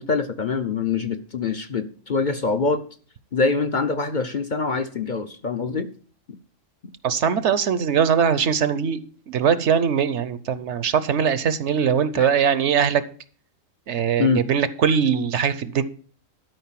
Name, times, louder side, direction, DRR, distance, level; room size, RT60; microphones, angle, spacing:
voice 1, 0.0-2.8 3.3-5.9 6.3-6.4 12.2-12.3 14.2-14.4, left 4 dB, 45° left, 8 dB, 0.8 m, -24 dB
voice 2, 7.0-9.0 9.3-13.0 13.9-15.8, right 7 dB, 65° right, 15 dB, 1.0 m, -21 dB
12.5 x 5.2 x 7.4 m, 0.43 s
omnidirectional pair, 1.3 m